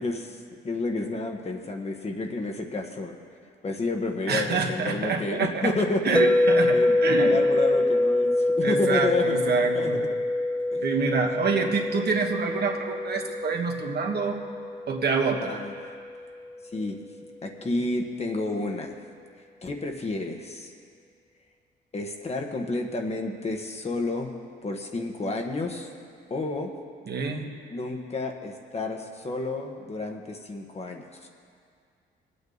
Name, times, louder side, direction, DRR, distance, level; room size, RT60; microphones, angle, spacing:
voice 1, 0.0-3.1 3.6-6.2 6.7-9.4 9.7-10.0 10.7-10.8 15.5-15.7 16.7-17.0 17.4-19.0 19.6-20.7 21.9-24.3 24.6-25.9 26.3-26.7 27.7-31.3, left 2 dB, 30° left, 3 dB, 1.5 m, -30 dB
voice 2, 4.3-5.7 6.0-7.4 8.6-10.0 10.8-14.4 14.9-15.6 27.1-27.5, right 4 dB, 55° right, 2 dB, 1.5 m, -27 dB
sound 1, 6.2-16.2, left 2 dB, 5° left, 0.4 m, -25 dB
21.0 x 8.9 x 4.1 m, 2.2 s
cardioid pair, 90°, 20 cm